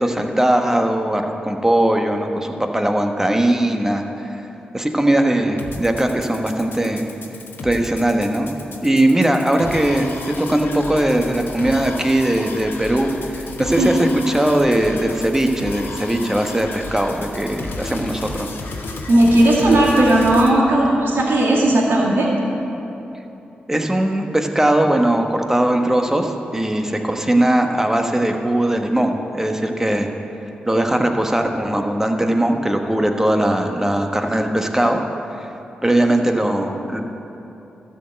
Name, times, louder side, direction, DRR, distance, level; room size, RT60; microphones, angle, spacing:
voice 1, 0.0-4.4 4.7-7.1 7.6-8.5 8.8-18.5 23.7-30.1 30.6-35.0 35.4-35.5 35.8-37.0, right 1 dB, 10° right, 4 dB, 1.2 m, -19 dB
sound 1, 5.6-20.5, left 3 dB, 70° left, 1.1 m, -33 dB
voice 2, 19.1-22.3, right 1 dB, 75° right, -5 dB, 2.1 m, -15 dB
12.5 x 4.6 x 7.8 m, 3.0 s
supercardioid pair, 40°, 4 cm